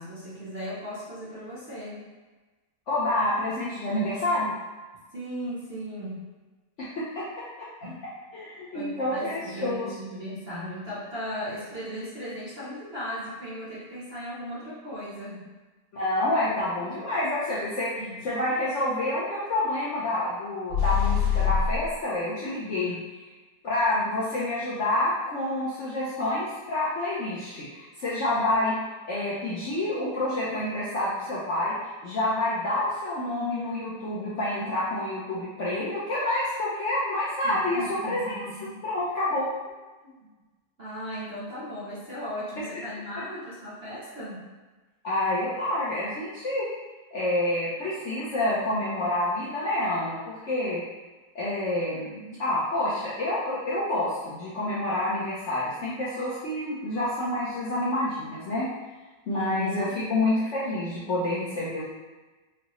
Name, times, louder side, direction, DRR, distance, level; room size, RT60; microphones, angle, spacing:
voice 1, 0.0-2.1 5.1-6.2 7.8-8.0 8.7-15.4 18.0-18.2 22.8-23.0 37.4-38.8 40.0-40.3 40.8-44.4 59.3-60.0, equal, 45° right, -8 dB, 0.9 m, -37 dB
voice 2, 2.9-4.5 6.8-7.2 7.6-7.7 8.3-9.9 15.9-17.9 18.2-22.9 23.6-28.8 29.0-31.7 32.0-38.4 38.8-39.5 45.0-46.7 47.1-50.8 51.3-58.7 59.3-61.8, left 1 dB, 60° left, -9 dB, 0.8 m, -28 dB
sound 1, 20.7-21.9, left 8 dB, 90° left, 1.6 m, -24 dB
4.7 x 2.0 x 3.0 m, 1.2 s
omnidirectional pair, 1.9 m